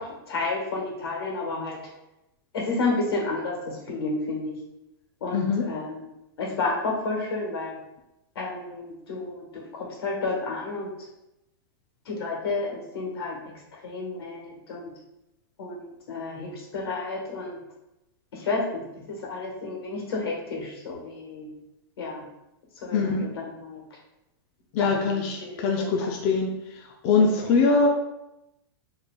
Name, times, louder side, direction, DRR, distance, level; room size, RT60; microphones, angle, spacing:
voice 1, 0.0-1.8 2.5-4.5 5.2-6.0 6.4-7.8 8.3-10.9 12.0-14.9 15.6-17.6 18.3-21.5 22.0-22.2 22.8-24.0 24.8-26.2 27.4-27.5, left 3 dB, 80° left, -1 dB, 1.4 m, -31 dB
voice 2, 5.3-5.6 22.9-23.3 24.7-26.5 27.0-27.9, left 4 dB, 40° left, 1 dB, 0.4 m, -22 dB
4.7 x 3.1 x 2.3 m, 0.90 s
supercardioid pair, 150°, 13 cm